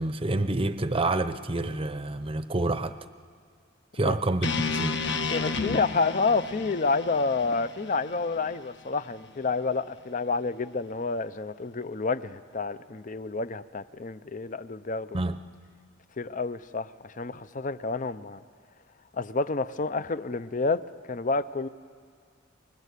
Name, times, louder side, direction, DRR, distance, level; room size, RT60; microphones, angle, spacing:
voice 1, 0.0-3.0 3.9-5.0 15.1-15.4, right 2 dB, 25° right, 12 dB, 0.7 m, -28 dB
sound 1, 4.4-8.6, left 4 dB, 60° left, 1.3 m, -31 dB
voice 2, 5.3-15.2 16.2-18.4 19.1-21.7, left 4 dB, 40° left, 14 dB, 0.6 m, -29 dB
29.0 x 22.5 x 8.3 m, 2.1 s
head